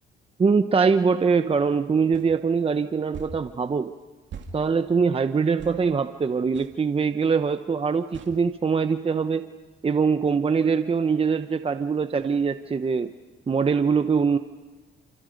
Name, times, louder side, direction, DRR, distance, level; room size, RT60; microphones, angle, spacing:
voice 1, 0.4-3.9 4.5-9.5 9.8-13.1 13.5-14.4, right 5 dB, 30° right, 10 dB, 0.8 m, -23 dB
sound 1, 2.1-2.3 3.1-3.4 4.3-4.5 5.6-5.8 6.5-6.7 8.1-8.4, right 5 dB, 65° right, 2.5 m, -40 dB
30.0 x 27.0 x 5.3 m, 1.3 s
cardioid pair, 90°, 20 cm